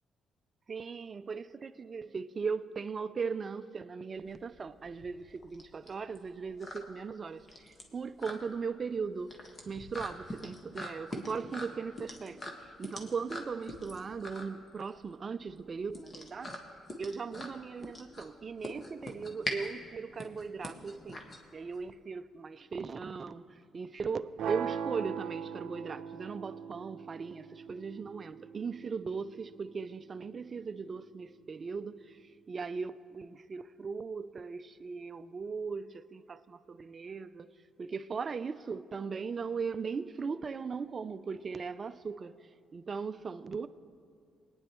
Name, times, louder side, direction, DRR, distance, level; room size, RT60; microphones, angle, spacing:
voice 1, 0.7-9.3 9.6-16.6 17.0-21.2 21.5-23.5 23.7-37.5 37.8-42.4 42.7-43.7, right 5 dB, 40° right, 0.4 m, -38 dB
sound 1, 4.2-21.9, left 1 dB, 35° left, 1.5 m, -43 dB
sound 2, 24.4-30.4, right 8 dB, 80° right, 0.6 m, -41 dB
21.0 x 9.7 x 3.1 m
cardioid pair, 90°, 0 cm